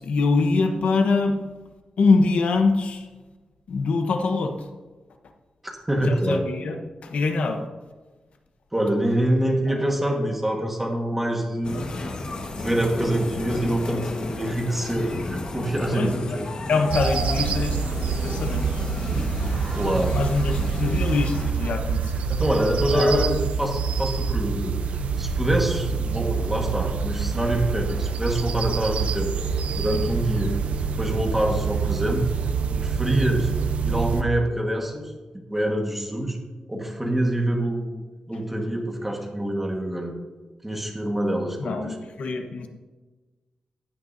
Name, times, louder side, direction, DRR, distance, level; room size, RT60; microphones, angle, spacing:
voice 1, 0.0-1.4 2.0-3.1 3.7-4.7 6.0-7.6 9.7-9.8 15.9-16.4 16.7-17.8 18.1-18.9 19.4-19.7 20.1-22.2 22.9-23.3 41.6-42.7, left 3 dB, 75° left, 5 dB, 1.1 m, -24 dB
voice 2, 5.9-6.4 8.7-11.9 12.6-16.4 19.7-20.1 22.3-24.8 25.2-29.3 29.7-32.2 32.7-33.5 33.8-35.1 35.5-36.4 36.7-40.1 40.6-41.9, right 1 dB, 10° right, 1 dB, 1.6 m, -25 dB
sound 1, 11.6-21.5, left 2 dB, 50° left, 1.5 m, -33 dB
sound 2, 16.9-34.2, right 6 dB, 85° right, 0.7 m, -26 dB
15.0 x 9.4 x 2.7 m, 1.3 s
wide cardioid pair, 155°, 2 cm